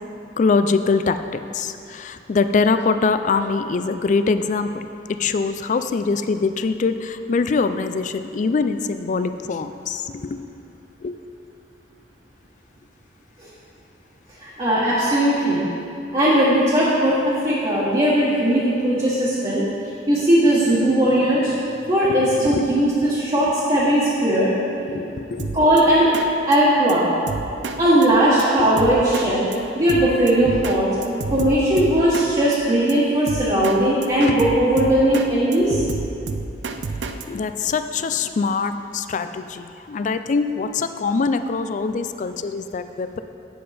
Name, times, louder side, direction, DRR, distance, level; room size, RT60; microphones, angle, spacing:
voice 1, 0.4-4.7 5.2-10.5 11.0-11.2 22.5-22.8 24.9-25.6 28.6-28.7 34.3-34.4 37.2-43.2, left 4 dB, 45° left, 10 dB, 0.4 m, -23 dB
voice 2, 14.4-15.6 16.1-19.6 20.1-21.5 21.9-24.5 25.5-26.1 26.5-27.1 27.8-29.4 29.7-30.9 31.3-35.8, right 1 dB, 30° right, -10 dB, 1.4 m, -18 dB
Drum kit, 25.4-25.8 26.1-26.3 26.5-26.6 26.9-27.0 27.3-27.8 28.0-28.1 28.4-28.5 28.8-29.3 29.5-29.6 29.9-30.8 31.0-32.3 32.5-32.6 32.9-33.0 33.3-33.8 34.0-35.3 35.5-37.2, right 4 dB, 90° right, 0.5 m, -29 dB
8.5 x 7.4 x 4.2 m, 2.7 s
head